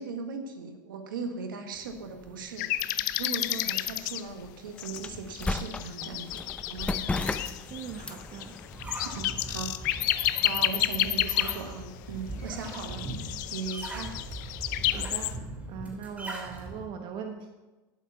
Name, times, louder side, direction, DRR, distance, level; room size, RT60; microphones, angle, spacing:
voice 1, 0.0-7.0 9.0-13.1 13.5-14.2, right 5 dB, 85° right, 6 dB, 1.7 m, -38 dB
sound 1, 1.8-10.8, left 2 dB, 10° left, 0.7 m, -38 dB
sound 2, 2.6-4.2 4.8-11.9 12.6-15.4, left 15 dB, 65° left, 0.6 m, -31 dB
sound 3, 7.0-16.9, right 1 dB, 15° right, 3.1 m, -41 dB
voice 2, 7.7-8.6 14.9-17.5, right 7 dB, 50° right, 4 dB, 1.2 m, -40 dB
11.5 x 8.0 x 5.7 m, 1.2 s
hypercardioid pair, 105°, 11 cm